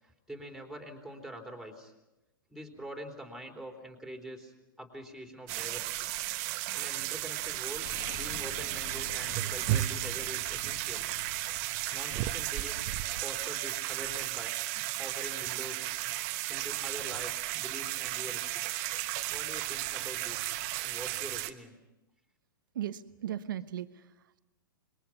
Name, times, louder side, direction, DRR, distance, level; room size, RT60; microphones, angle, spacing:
voice 1, 0.3-1.9 2.5-4.5 4.8-6.1 6.8-7.9 8.2-11.1 11.9-12.9 13.2-14.6 15.0-15.9 16.5-18.5 19.3-20.5 20.8-21.7, right 1 dB, ahead, 2 dB, 3.5 m, -44 dB
sound 1, 5.5-21.5, right 16 dB, 45° right, 1.2 m, -34 dB
Explosion, 7.8-13.3, left 6 dB, 45° left, 2.1 m, -48 dB
voice 2, 22.7-24.4, right 11 dB, 65° right, 12 dB, 1.1 m, -38 dB
26.5 x 22.0 x 5.9 m, 0.99 s
hypercardioid pair, 120°, 12 cm